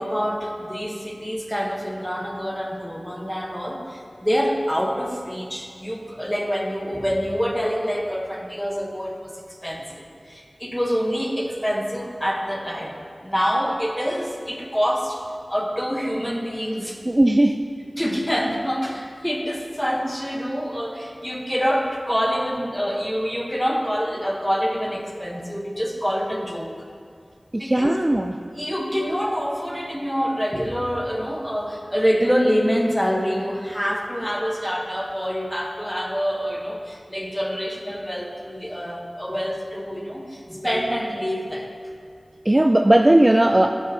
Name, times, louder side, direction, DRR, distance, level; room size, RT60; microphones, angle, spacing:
voice 1, 0.0-15.2 15.5-17.0 18.0-26.8 27.5-28.1 28.5-41.7, equal, 5° left, 1 dB, 1.2 m, -26 dB
voice 2, 17.1-17.6 27.5-28.3 42.5-43.7, right 1 dB, 30° right, 5 dB, 0.3 m, -17 dB
12.0 x 8.6 x 2.9 m, 2.2 s
wide cardioid pair, 50°, 0 cm